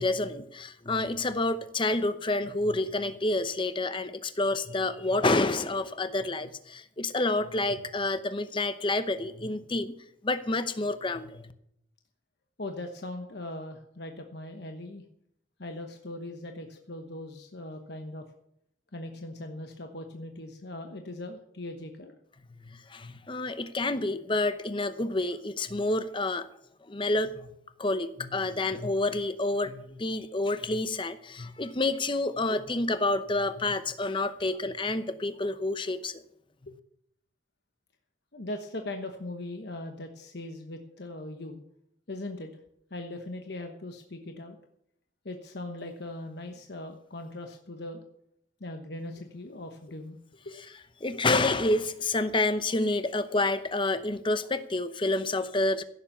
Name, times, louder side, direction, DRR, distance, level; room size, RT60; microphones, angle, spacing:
voice 1, 0.0-9.9 10.2-11.5 22.6-26.5 26.8-27.5 27.8-36.2 51.0-55.8, left 2 dB, 25° left, 12 dB, 0.8 m, -28 dB
voice 2, 12.6-15.0 15.6-18.3 18.9-22.1 36.7-36.8 38.3-41.6 42.1-42.5 42.9-44.6 45.2-48.0 48.6-50.5 51.1-51.2, left 1 dB, 60° left, 4 dB, 1.1 m, -40 dB
16.0 x 7.2 x 7.1 m, 0.76 s
head